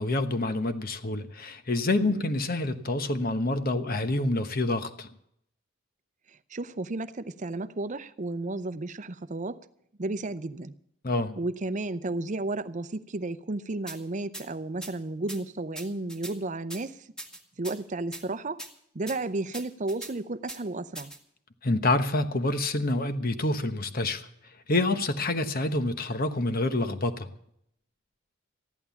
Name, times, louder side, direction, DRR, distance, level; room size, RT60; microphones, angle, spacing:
voice 1, 0.0-5.1 11.0-11.4 21.6-24.3 24.7-27.3, left 2 dB, 45° left, 1.1 m, -27 dB
voice 2, 2.0-2.3 6.5-9.6 10.0-10.7 11.4-17.0 17.6-18.6 18.9-21.1, right 2 dB, 40° right, 0.7 m, -33 dB
sound 1, 13.9-14.0 14.3-14.4 14.8-14.9 15.3-15.4 15.7-16.3 16.7-16.8 17.2-17.8 18.1-18.2 18.6-18.7 19.1-19.2 19.5-20.1 20.5-20.6 20.9-21.2, right 1 dB, 5° left, 1.9 m, -40 dB
14.5 x 11.0 x 7.1 m
head